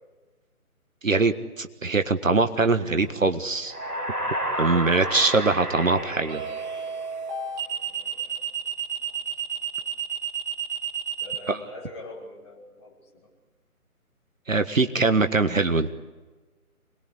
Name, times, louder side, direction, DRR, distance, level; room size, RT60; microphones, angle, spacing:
voice 1, 1.0-3.7 4.6-6.4 11.5-11.6 14.5-16.0, right 3 dB, 60° right, 8 dB, 1.6 m, -22 dB
sound 1, 3.0-3.3 6.3-11.4, right 7 dB, 15° right, 2.1 m, -31 dB
sound 2, 3.6-7.5, right 1 dB, 85° right, 3.6 m, -31 dB
voice 2, 7.8-8.4 11.2-13.3, left 2 dB, 20° left, -4 dB, 6.0 m, -44 dB
28.5 x 21.0 x 8.5 m, 1.2 s
figure-of-eight pair, 150°, 44 cm